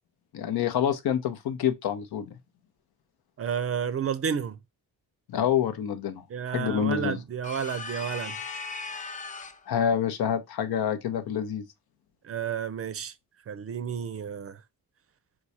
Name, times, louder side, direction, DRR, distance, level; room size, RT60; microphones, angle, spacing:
voice 1, 0.3-2.3 5.3-7.2 9.7-11.6, left 9 dB, 85° left, 0.8 m, -27 dB
voice 2, 3.4-4.6 6.3-8.4 12.2-13.1 13.5-14.6, right 7 dB, 40° right, 0.4 m, -31 dB
sound 1, 7.4-9.7, left 4 dB, 20° left, 0.5 m, -37 dB
4.7 x 2.2 x 4.1 m
cardioid pair, 110°, 37 cm